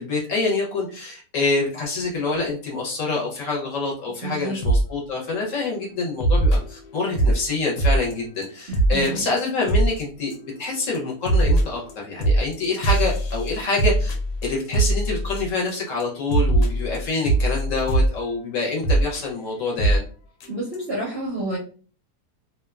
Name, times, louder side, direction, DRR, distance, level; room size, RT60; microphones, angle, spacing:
voice 1, 0.0-14.1 14.4-20.0, left 3 dB, 60° left, -2 dB, 1.0 m, -26 dB
voice 2, 4.2-4.6 8.7-9.3 20.5-21.6, right 2 dB, 55° right, -4 dB, 0.7 m, -29 dB
sound 1, 4.6-4.9 5.3-5.5 6.2-7.4 7.8-8.1 8.4-8.5 8.7-9.1 9.4-9.5 9.7-10.0 10.3-10.7 10.9-15.7 16.0-16.1 16.3-18.1 18.8-19.2 19.8-20.0 20.4-20.5 20.7-20.8, right 2 dB, 90° left, 1.1 m, -21 dB
2.7 x 2.2 x 2.2 m, 0.41 s
omnidirectional pair, 1.7 m